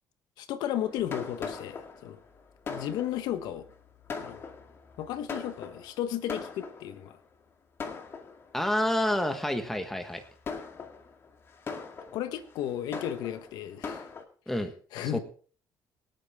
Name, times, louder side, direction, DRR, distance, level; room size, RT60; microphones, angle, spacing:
voice 1, 0.4-2.2 2.7-3.7 4.2-4.4 5.0-7.2 9.1-9.2 12.1-14.1 14.9-15.2, left 11 dB, 85° left, 1.3 m, -34 dB
Fireworks, 0.7-7.1 7.8-8.7 9.3-9.5 10.1-14.2, left 5 dB, 35° left, 2.0 m, -41 dB
voice 2, 8.5-10.2 14.5-14.7 15.1-15.2, left 1 dB, 5° left, 1.4 m, -28 dB
24.5 x 8.9 x 3.6 m
cardioid pair, 135°, 7 cm